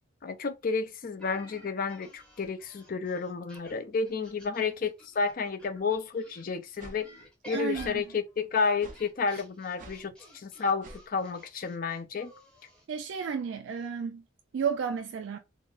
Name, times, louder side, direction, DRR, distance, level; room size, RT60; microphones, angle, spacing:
voice 1, 0.2-7.1 7.5-12.3, left 5 dB, 45° left, 0.4 m, -31 dB
sound 1, 1.2-6.4 7.0-12.9, equal, 5° left, 1.0 m, -52 dB
sound 2, 6.8-7.0 7.7-8.0 8.8-9.0 9.8-10.0 10.8-11.0, right 1 dB, 45° right, 0.7 m, -46 dB
voice 2, 7.5-8.0 9.3-9.4 12.9-14.2 14.5-15.4, right 6 dB, 65° right, 0.3 m, -32 dB
3.8 x 2.0 x 2.4 m
head